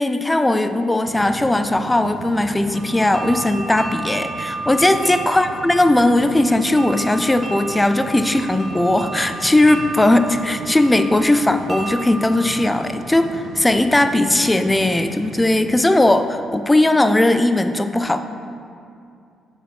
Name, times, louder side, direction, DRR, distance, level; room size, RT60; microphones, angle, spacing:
voice 1, 0.0-18.2, left 1 dB, 10° left, 9 dB, 0.3 m, -18 dB
sound 1, 1.0-15.9, right 4 dB, 70° right, 0.5 m, -36 dB
sound 2, 2.7-13.6, right 2 dB, 35° right, 0.8 m, -33 dB
6.7 x 4.1 x 4.8 m, 2.4 s
cardioid pair, 90°, 0 cm